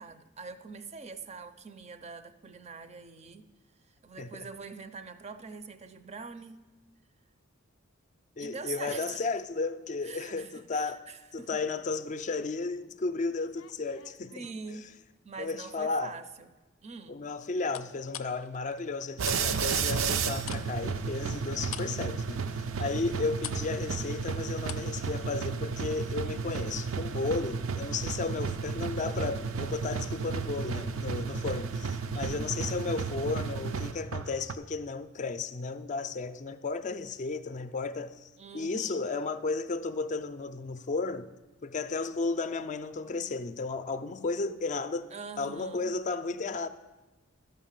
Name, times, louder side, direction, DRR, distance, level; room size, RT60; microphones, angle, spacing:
voice 1, 0.0-3.5 4.0-6.6 8.4-9.2 10.0-11.6 14.3-14.9 15.2-16.5 16.8-17.2 22.8-23.2 32.1-32.6 38.4-39.1 45.1-45.9, right 4 dB, 30° right, 0.5 m, -44 dB
voice 2, 8.4-11.0 11.3-14.5 15.4-16.1 17.1-22.4 22.8-41.3 41.6-45.1 45.4-46.7, left 3 dB, 35° left, 0.4 m, -34 dB
sound 1, 13.3-15.0 15.5-15.9 17.7-19.4 19.7-25.0 25.2-25.3, left 11 dB, 85° left, 0.5 m, -45 dB
sound 2, 19.2-34.5, right 5 dB, 80° right, 0.5 m, -33 dB
12.0 x 5.6 x 7.3 m
head